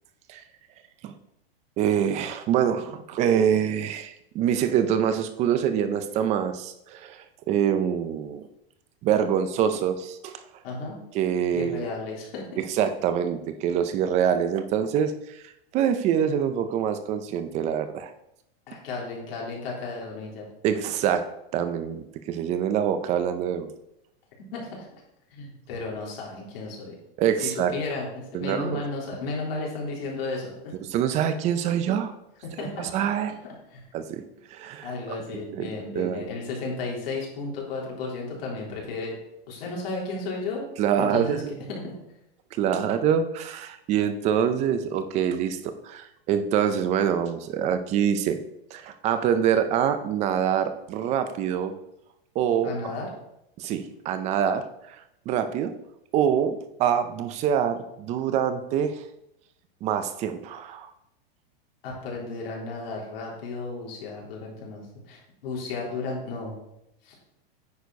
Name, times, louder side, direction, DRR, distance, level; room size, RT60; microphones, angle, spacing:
voice 1, 1.8-8.4 9.0-10.3 11.1-11.9 12.6-15.4 15.7-18.1 20.6-21.3 21.5-23.7 27.2-27.7 28.3-28.8 30.8-32.1 32.6-33.4 33.9-34.2 34.5-34.9 35.3-35.7 35.9-36.3 40.8-41.5 42.6-48.4 48.7-51.7 52.3-52.7 53.6-55.0 55.3-55.7 56.1-59.0 59.8-60.9, right 8 dB, 20° right, 10 dB, 0.5 m, -25 dB
voice 2, 10.6-11.0 11.5-12.6 18.7-20.4 24.5-24.9 25.3-26.9 27.4-30.7 32.4-32.9 33.4-33.8 34.8-39.2 39.5-40.7 40.9-41.4 41.7-41.9 52.6-53.1 61.8-66.6 67.0-67.1, left 3 dB, 70° left, -3 dB, 3.4 m, -34 dB
9.5 x 4.4 x 5.2 m, 0.81 s
supercardioid pair, 155°, 30 cm